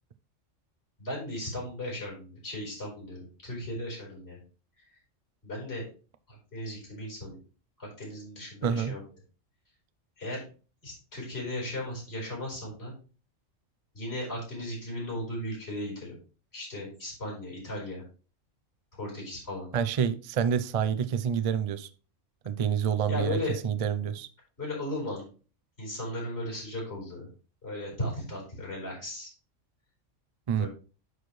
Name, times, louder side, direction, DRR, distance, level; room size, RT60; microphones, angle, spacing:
voice 1, 1.0-4.4 5.4-5.9 6.3-7.4 7.8-9.0 10.2-10.4 10.8-12.9 13.9-16.1 16.5-18.0 18.9-19.7 23.1-23.5 24.6-25.2 25.8-27.3 27.6-29.3 30.6-30.7, left 1 dB, 55° left, 4.7 m, -36 dB
voice 2, 8.6-8.9 19.7-21.9 22.4-23.4 23.6-24.3 30.5-30.7, right 8 dB, 55° right, 0.4 m, -27 dB
11.0 x 4.4 x 3.2 m
omnidirectional pair, 1.3 m